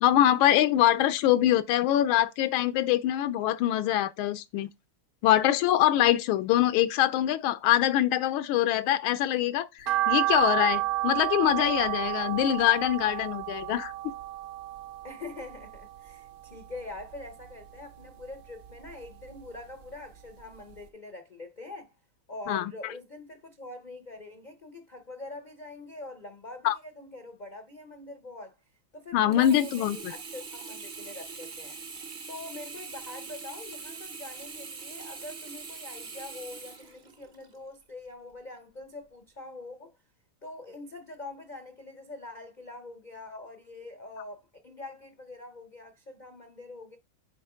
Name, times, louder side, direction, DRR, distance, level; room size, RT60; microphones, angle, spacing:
voice 1, 0.0-4.7 5.2-13.9 22.5-22.7 26.6-26.8 29.1-30.1, left 12 dB, 85° left, 1.4 m, -24 dB
sound 1, 9.9-16.2 16.5-17.7 18.0-19.5 19.8-19.9 20.4-20.5 20.7-20.8, right 16 dB, 60° right, 1.0 m, -31 dB
voice 2, 15.0-21.9 22.3-28.6 28.9-31.8 32.3-40.0 40.4-47.0, left 2 dB, 70° left, 0.4 m, -44 dB
Sink (filling or washing), 29.3-37.6 38.1-38.2, right 4 dB, 45° right, 0.6 m, -42 dB
8.7 x 3.0 x 4.9 m
omnidirectional pair, 2.2 m